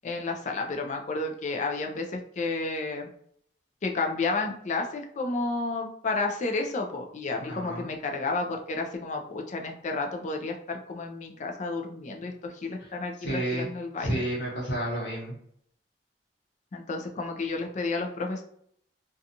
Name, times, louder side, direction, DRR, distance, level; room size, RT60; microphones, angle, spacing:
voice 1, 0.0-3.1 3.8-14.2 16.7-18.4, left 3 dB, 45° left, 3 dB, 0.4 m, -31 dB
voice 2, 7.4-7.9 13.2-13.7 14.0-15.3, right 1 dB, 75° left, -5 dB, 0.8 m, -30 dB
2.5 x 2.3 x 2.7 m, 0.65 s
head